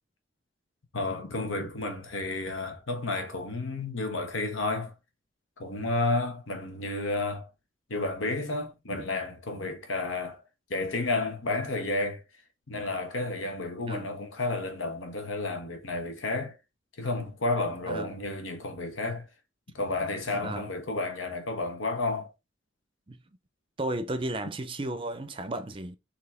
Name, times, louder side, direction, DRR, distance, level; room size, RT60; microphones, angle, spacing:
voice 1, 0.9-4.9 5.6-7.5 7.9-10.4 10.7-12.2 12.7-16.6 17.0-19.3 19.7-22.3, left 2 dB, 85° left, 1.3 m, -31 dB
voice 2, 23.8-26.0, right 1 dB, 25° right, 0.5 m, -34 dB
4.2 x 3.0 x 4.2 m
head